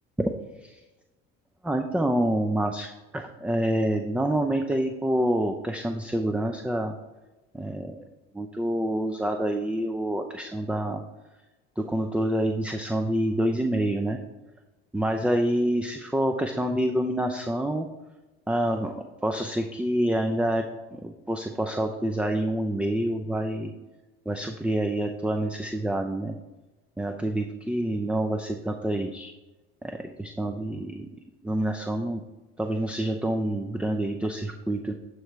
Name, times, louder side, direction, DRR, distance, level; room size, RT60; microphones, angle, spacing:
voice 1, 1.6-6.9 7.5-8.0 8.3-11.0 11.8-14.2 14.9-17.9 18.5-18.9 19.2-20.6 20.9-23.7 24.3-26.3 27.0-29.3 29.8-31.1 31.4-32.2 32.6-34.9, right 1 dB, 5° right, 5 dB, 0.5 m, -27 dB
12.5 x 4.7 x 3.1 m, 1.1 s
supercardioid pair, 80°, 30 cm